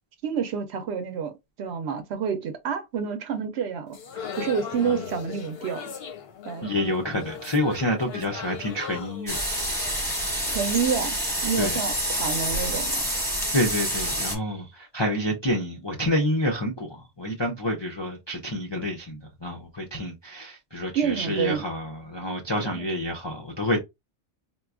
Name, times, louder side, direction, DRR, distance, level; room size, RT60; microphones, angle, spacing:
voice 1, 0.2-1.3 1.6-4.0 4.4-5.8 6.4-6.7 10.5-11.2 11.4-13.0 20.9-21.6 22.6-22.8, right 7 dB, 65° right, 0.8 m, -28 dB
sound 1, 3.9-10.9, left 7 dB, 60° left, 0.8 m, -39 dB
voice 2, 6.6-9.4 11.6-11.8 13.5-16.9 17.2-23.8, left 1 dB, 40° left, 0.3 m, -28 dB
sound 2, 9.3-14.4, equal, 5° left, 0.9 m, -27 dB
4.1 x 2.3 x 2.3 m
omnidirectional pair, 1.3 m